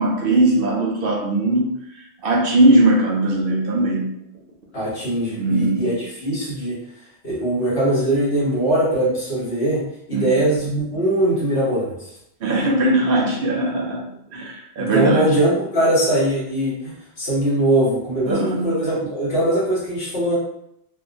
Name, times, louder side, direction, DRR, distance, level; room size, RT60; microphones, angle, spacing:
voice 1, 0.0-1.7 2.2-4.1 5.4-5.8 10.1-10.4 12.4-14.0 14.3-15.3 18.3-18.7, right 1 dB, 65° right, 0 dB, 0.7 m, -19 dB
voice 2, 4.7-6.8 7.2-9.8 10.1-12.1 14.8-20.4, right 1 dB, 70° left, -8 dB, 1.4 m, -21 dB
2.8 x 2.2 x 2.5 m, 0.76 s
omnidirectional pair, 1.1 m